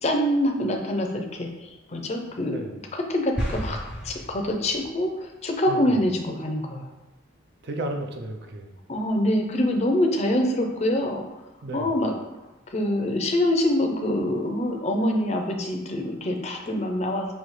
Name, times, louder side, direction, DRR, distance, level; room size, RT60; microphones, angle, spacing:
voice 1, 0.0-2.6 2.9-3.8 4.0-6.9 8.9-11.2 11.7-12.1 12.7-17.3, left 1 dB, 35° left, 2 dB, 0.5 m, -25 dB
sound 1, 3.4-5.0, equal, 5° right, 0.7 m, -32 dB
voice 2, 5.7-6.0 7.6-8.7 11.6-11.9, right 1 dB, 55° right, 4 dB, 0.5 m, -33 dB
5.6 x 2.8 x 3.2 m, 1.0 s
head